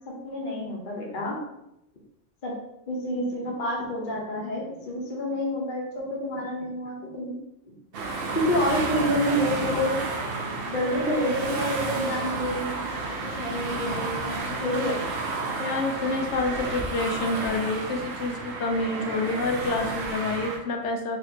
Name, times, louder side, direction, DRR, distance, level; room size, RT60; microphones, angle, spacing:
voice 1, 0.1-1.4 2.4-2.5 2.9-7.3 7.7-7.8 8.3-9.9 10.7-15.0, left 1 dB, 45° left, -2 dB, 1.0 m, -28 dB
sound 1, 7.9-20.6, right 3 dB, 55° right, 0.8 m, -31 dB
voice 2, 15.6-21.2, left 3 dB, 70° left, 3 dB, 0.9 m, -28 dB
4.2 x 3.0 x 2.8 m, 0.85 s
omnidirectional pair, 1.3 m